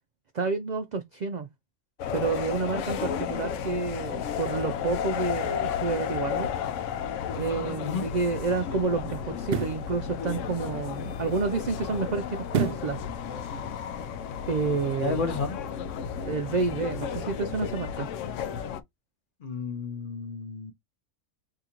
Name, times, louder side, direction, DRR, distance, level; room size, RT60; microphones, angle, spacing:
voice 1, 0.3-1.5 2.1-6.5 7.3-13.0 14.5-15.2 16.2-18.1, right 4 dB, 80° right, 0.4 m, -29 dB
sound 1, 2.0-18.8, left 8 dB, 80° left, 0.9 m, -33 dB
sound 2, 9.4-9.9 12.5-13.0 13.4-13.5, right 6 dB, 60° right, 0.7 m, -28 dB
voice 2, 15.0-15.6 19.4-20.7, left 4 dB, 50° left, 0.7 m, -31 dB
3.7 x 2.8 x 2.8 m
omnidirectional pair, 1.3 m